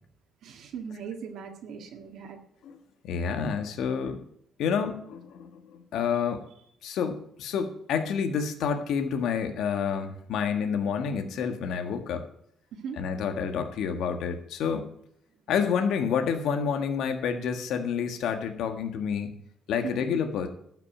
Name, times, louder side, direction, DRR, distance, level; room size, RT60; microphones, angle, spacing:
voice 1, 0.4-2.4 12.7-13.0 20.0-20.1, right 6 dB, 80° right, 2 dB, 1.7 m, -39 dB
voice 2, 3.0-4.2 4.6-6.4 6.8-12.2 13.0-14.9 15.5-19.3 19.7-20.5, left 6 dB, 80° left, 6 dB, 1.6 m, -29 dB
12.5 x 6.1 x 8.7 m, 0.70 s
cardioid pair, 90°, 0 cm